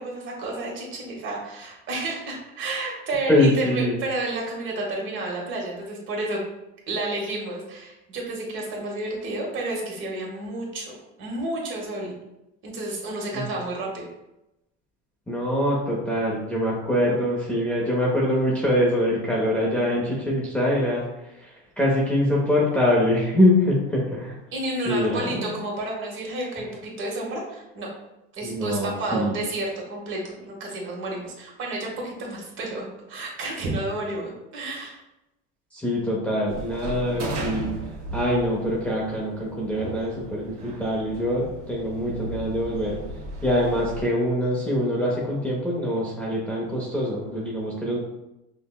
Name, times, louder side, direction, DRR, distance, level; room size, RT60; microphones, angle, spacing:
voice 1, 0.0-6.4 6.9-10.9 11.2-12.2 12.6-14.1 24.5-27.9 28.3-35.0, right 2 dB, 45° right, -2 dB, 1.1 m, -31 dB
voice 2, 3.3-4.0 13.3-13.5 15.3-21.0 21.4-24.4 24.9-25.5 28.4-29.3 35.7-37.7 38.1-43.0 43.4-48.0, left 1 dB, 5° left, -5 dB, 0.5 m, -24 dB
sound 1, 36.5-44.0, right 2 dB, 65° right, 1.2 m, -36 dB
5.4 x 2.1 x 2.3 m, 0.91 s
cardioid pair, 135°, 29 cm